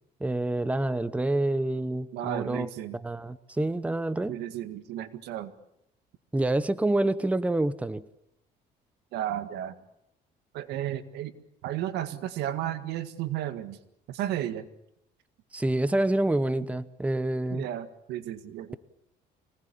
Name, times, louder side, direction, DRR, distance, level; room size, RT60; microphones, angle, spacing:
voice 1, 0.2-4.4 6.3-8.0 15.5-17.7, right 1 dB, 10° right, 15 dB, 0.9 m, -27 dB
voice 2, 2.1-3.0 4.3-5.5 9.1-9.7 10.5-11.3 11.6-13.8 14.1-14.7 17.5-18.8, right 12 dB, 85° right, 11 dB, 1.8 m, -33 dB
24.5 x 19.0 x 8.6 m, 0.79 s
cardioid pair, 110°, 17 cm